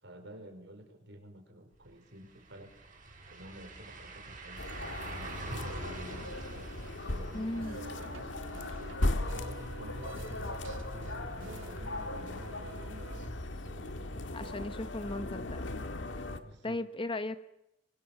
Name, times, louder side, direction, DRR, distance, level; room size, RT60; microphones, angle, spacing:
voice 1, 0.0-2.7 3.3-6.7 7.1-14.5 16.4-16.8, equal, 65° right, 6 dB, 5.2 m, -51 dB
sound 1, 1.7-1.8 2.1-11.9 12.3-12.4 15.2-15.3, right 2 dB, 45° right, 7.4 m, -47 dB
sound 2, 4.6-16.4, left 1 dB, 65° left, 1.9 m, -38 dB
voice 2, 7.3-7.8 14.3-15.7 16.6-17.4, left 2 dB, 25° left, 11 dB, 1.2 m, -36 dB
sound 3, 7.6-13.3, right 3 dB, 85° right, 2.0 m, -48 dB
25.0 x 24.5 x 7.4 m, 0.84 s
head